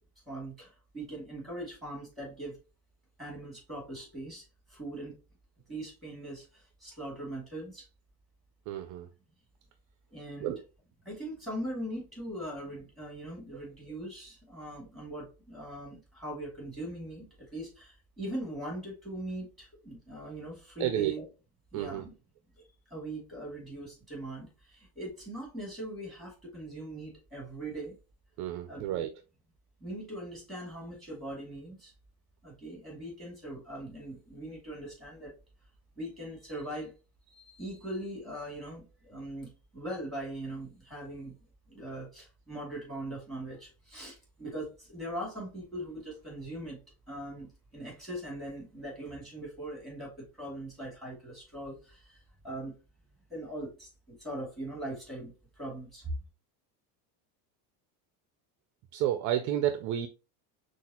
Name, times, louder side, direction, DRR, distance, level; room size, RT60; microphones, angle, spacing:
voice 1, 0.3-2.6 3.2-5.2 5.7-7.9 10.1-10.5 11.0-17.3 17.5-21.2 21.7-22.1 22.6-22.7 22.9-27.9 28.7-29.1 29.8-31.9 32.4-35.3 36.0-36.9 37.3-41.3 41.7-46.8 47.1-52.7 53.3-56.1, right 1 dB, ahead, 2.4 m, -41 dB
voice 2, 8.7-9.1 10.4-10.6 20.8-21.1 21.7-22.1 28.4-29.1 58.9-60.1, right 12 dB, 45° right, 0.5 m, -30 dB
5.8 x 2.5 x 2.8 m
cardioid pair, 145°, 42 cm